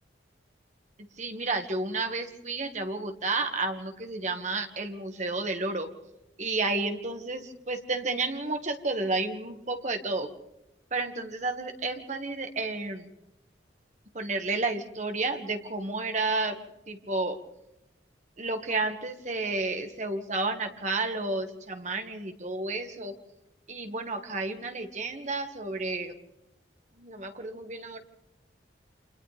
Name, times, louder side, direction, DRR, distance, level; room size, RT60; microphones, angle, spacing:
voice 1, 1.2-5.9 6.4-10.3 10.9-13.1 14.1-16.6 16.9-17.4 18.4-23.1 23.7-26.1 27.0-28.0, right 3 dB, 40° right, 5 dB, 1.9 m, -31 dB
29.5 x 26.5 x 3.5 m, 0.92 s
head